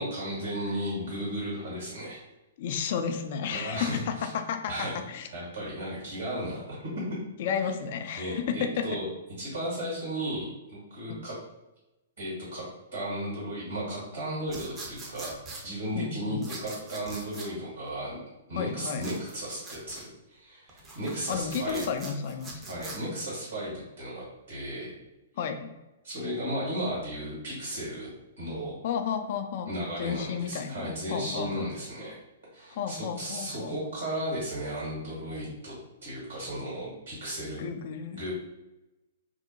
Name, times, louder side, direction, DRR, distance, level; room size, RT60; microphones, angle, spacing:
voice 1, 0.0-2.2 3.5-4.3 4.7-5.0 5.3-6.9 8.1-9.1 9.4-11.3 12.2-12.6 12.9-18.2 18.5-21.8 22.7-24.9 26.0-28.1 28.4-28.8 29.7-32.2 32.5-35.7 36.0-37.6 38.1-38.3, equal, 70° right, -6 dB, 1.3 m, -35 dB
voice 2, 2.6-5.3 7.4-8.9 15.9-16.5 18.6-19.0 21.3-22.6 25.4-25.7 28.8-29.7 30.0-31.7 32.7-33.8 37.6-38.3, left 7 dB, 50° left, 7 dB, 0.3 m, -32 dB
sound 1, 14.5-15.6 16.4-17.5 19.0-20.1 20.7-23.0, right 3 dB, 20° right, 0.5 m, -43 dB
2.7 x 2.0 x 2.7 m, 0.99 s
figure-of-eight pair, 110°, 0 cm